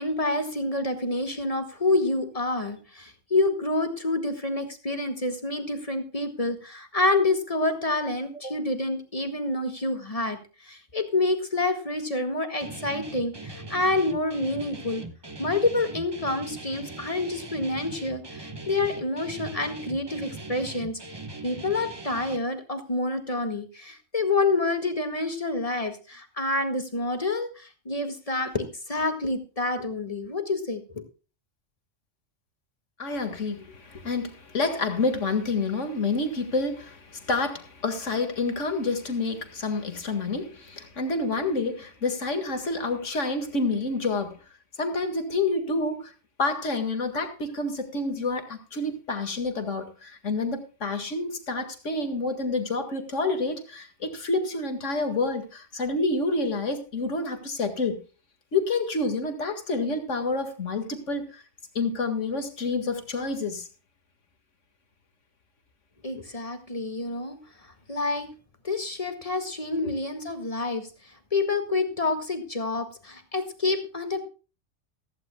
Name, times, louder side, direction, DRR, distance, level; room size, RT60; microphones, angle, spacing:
voice 1, 0.0-15.1 15.4-21.0 21.4-31.0 66.0-67.4 67.9-68.3 68.6-70.9 71.3-74.2, left 2 dB, 30° left, 1.9 m, -28 dB
Guitar, 12.6-22.4, right 2 dB, 20° right, 1.1 m, -40 dB
voice 2, 33.0-44.4 44.8-46.1 46.4-58.0 58.5-61.4 61.8-63.7 69.8-69.9, left 3 dB, 85° left, 2.2 m, -28 dB
16.0 x 15.0 x 2.2 m
omnidirectional pair, 1.2 m